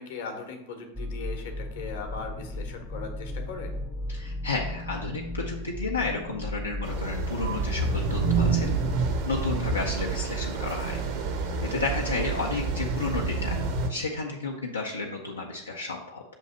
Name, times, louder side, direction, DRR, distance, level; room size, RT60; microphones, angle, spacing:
voice 1, 0.0-3.8 12.2-12.4, left 5 dB, 55° left, 4 dB, 0.9 m, -39 dB
sound 1, 0.9-9.5, left 1 dB, 10° left, 0.6 m, -36 dB
voice 2, 4.1-8.7 9.3-11.0 11.7-13.6 13.9-16.2, left 3 dB, 75° left, -2 dB, 0.6 m, -32 dB
sound 2, 6.8-13.9, right 4 dB, 50° right, 0.7 m, -28 dB
6.4 x 2.7 x 5.4 m, 0.86 s
figure-of-eight pair, 90°, 0 cm